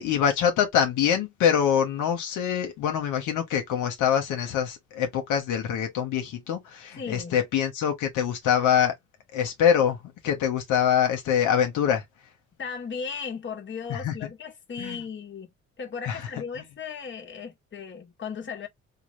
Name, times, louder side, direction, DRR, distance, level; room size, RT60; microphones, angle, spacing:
voice 1, 0.0-8.9 9.3-10.0 10.2-12.0 13.9-14.1 14.8-15.0 16.0-16.2, left 8 dB, 90° left, 1.0 m, -24 dB
voice 2, 7.0-7.4 12.6-15.5 15.8-18.7, left 6 dB, 40° left, 1.2 m, -36 dB
3.9 x 2.3 x 3.1 m
cardioid pair, 90°, 30 cm